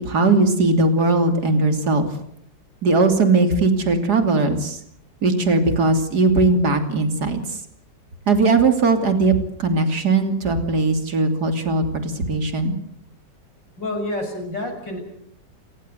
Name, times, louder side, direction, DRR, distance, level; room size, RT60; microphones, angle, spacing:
voice 1, 0.0-2.1 2.8-4.8 5.2-7.4 8.3-12.7, right 3 dB, 60° right, 7 dB, 3.5 m, -19 dB
voice 2, 13.8-15.0, left 1 dB, 85° left, 4 dB, 7.5 m, -28 dB
30.0 x 18.0 x 8.0 m, 0.70 s
omnidirectional pair, 1.9 m